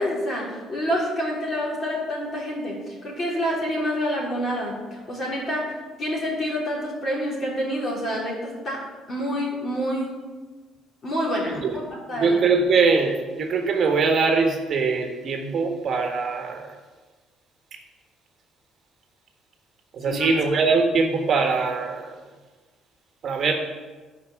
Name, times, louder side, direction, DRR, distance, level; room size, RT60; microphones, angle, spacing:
voice 1, 0.0-5.7 6.0-10.1 11.0-11.8 12.1-12.4 20.1-20.3, equal, 35° left, -3 dB, 3.5 m, -27 dB
voice 2, 12.1-16.7 19.9-22.2 23.2-23.5, right 4 dB, 40° right, 3 dB, 1.3 m, -22 dB
12.0 x 5.4 x 7.1 m, 1.3 s
cardioid pair, 145°, 0 cm